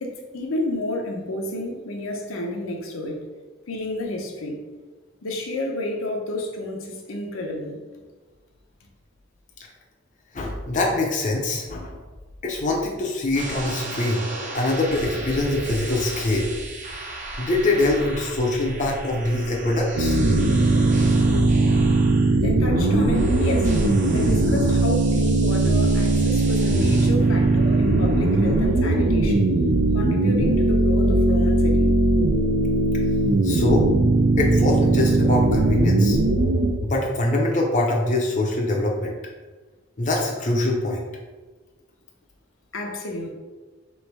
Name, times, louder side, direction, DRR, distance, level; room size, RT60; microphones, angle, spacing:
voice 1, 0.0-3.3 3.7-4.6 5.2-7.8 22.3-23.7 24.1-29.6 29.9-31.9 42.7-43.3, left 1 dB, 85° left, 1 dB, 0.8 m, -30 dB
voice 2, 10.3-12.0 12.4-14.3 14.5-16.6 17.4-20.2 33.4-33.9 34.4-36.2 36.8-39.1 40.0-41.0, left 2 dB, 40° left, -1 dB, 0.6 m, -23 dB
sound 1, 13.3-28.7, right 1 dB, 40° right, 0.7 m, -33 dB
sound 2, 20.0-36.7, right 2 dB, 70° right, 0.5 m, -19 dB
3.2 x 3.1 x 4.6 m, 1.3 s
head